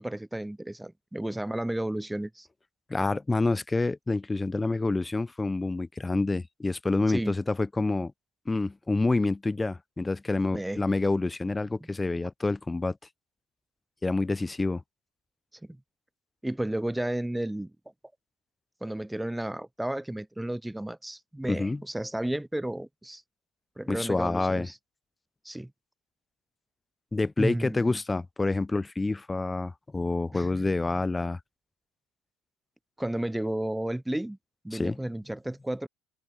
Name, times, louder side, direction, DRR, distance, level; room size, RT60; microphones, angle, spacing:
voice 1, 0.0-2.5 7.1-7.3 10.5-10.8 15.6-15.8 16.4-17.7 18.8-23.2 23.8-24.8 25.4-25.7 27.4-28.0 30.3-30.5 33.0-34.4 34.6-35.9, right 1 dB, 5° right, 1.5 m, -32 dB
voice 2, 2.9-8.1 8.5-13.0 14.0-14.8 21.5-21.8 23.9-24.7 27.1-31.4 34.7-35.0, left 3 dB, 15° left, 0.3 m, -27 dB
supercardioid pair, 105°, 0 cm